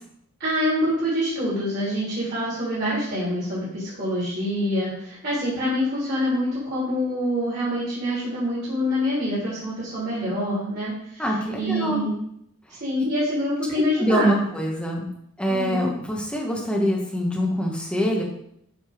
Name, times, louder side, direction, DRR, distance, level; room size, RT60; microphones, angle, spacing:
voice 1, 0.4-11.3 11.6-12.2 12.8-14.3 15.5-15.8, equal, 50° right, -9 dB, 3.1 m, -26 dB
voice 2, 11.2-12.0 14.0-15.1 15.4-18.2, equal, 5° left, -2 dB, 1.3 m, -24 dB
7.7 x 4.0 x 5.0 m, 0.72 s
head